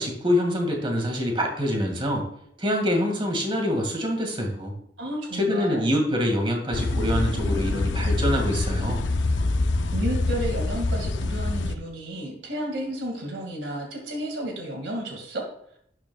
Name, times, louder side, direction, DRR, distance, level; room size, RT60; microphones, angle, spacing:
voice 1, 0.0-2.3 2.6-4.7 5.3-9.0, equal, 30° right, 2 dB, 2.0 m, -25 dB
voice 2, 5.0-5.8 9.9-15.5, right 1 dB, 80° right, 1 dB, 2.2 m, -32 dB
sound 1, 6.7-11.8, left 2 dB, 85° left, 0.7 m, -25 dB
12.0 x 9.5 x 2.4 m, 0.69 s
head